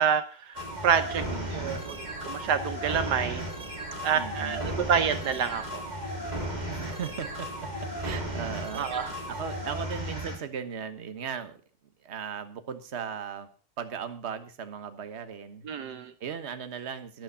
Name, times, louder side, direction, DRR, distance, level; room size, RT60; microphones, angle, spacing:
voice 1, 0.0-1.2 1.5-3.4 4.0-5.8 8.7-9.1 15.6-16.1, right 7 dB, 70° right, 11 dB, 1.4 m, -28 dB
sound 1, 0.5-10.4, right 1 dB, 25° right, 3.7 m, -35 dB
voice 2, 1.3-1.9 4.1-4.6 6.7-7.7 8.0-11.6 12.0-13.5 13.8-15.7 16.2-17.2, right 7 dB, 40° right, 10 dB, 1.4 m, -37 dB
12.5 x 11.5 x 5.6 m, 0.38 s
omnidirectional pair, 1.9 m